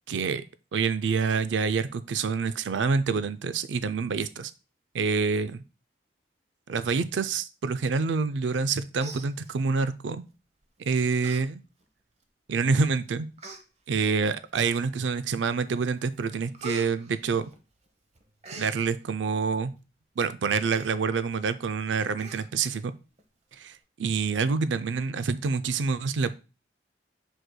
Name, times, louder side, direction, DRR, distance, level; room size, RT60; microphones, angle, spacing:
voice 1, 0.1-0.4 0.7-4.5 4.9-5.6 6.7-10.2 10.8-11.6 12.5-13.3 13.9-17.5 18.6-19.7 20.2-22.9 23.5-26.3, right 5 dB, 85° right, 13 dB, 0.4 m, -27 dB
Human voice, 8.5-8.7 9.0-9.9 10.6-10.8 11.2-11.4 11.8-11.9 12.7-12.8 13.4-13.6 14.5-15.0 15.5-15.9 16.2-17.9 18.1-18.7 20.6-20.9 21.3-21.4 21.7-21.8 22.2-22.8 23.2-23.3, right 4 dB, 35° right, 0.9 m, -43 dB
7.7 x 6.3 x 2.2 m, 0.31 s
head